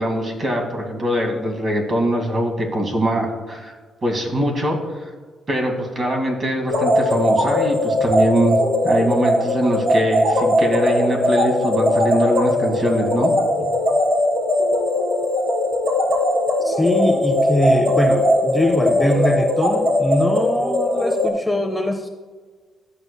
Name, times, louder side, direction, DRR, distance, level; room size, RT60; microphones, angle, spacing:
voice 1, 0.0-3.7 4.0-5.1 5.5-8.6 8.8-13.3, equal, 40° right, 1 dB, 1.9 m, -22 dB
sound 1, 6.7-21.3, left 1 dB, 70° right, 1.7 m, -19 dB
voice 2, 16.6-22.1, left 1 dB, 5° left, 5 dB, 0.5 m, -22 dB
12.5 x 6.6 x 2.2 m, 1.5 s
cardioid pair, 90°, 0 cm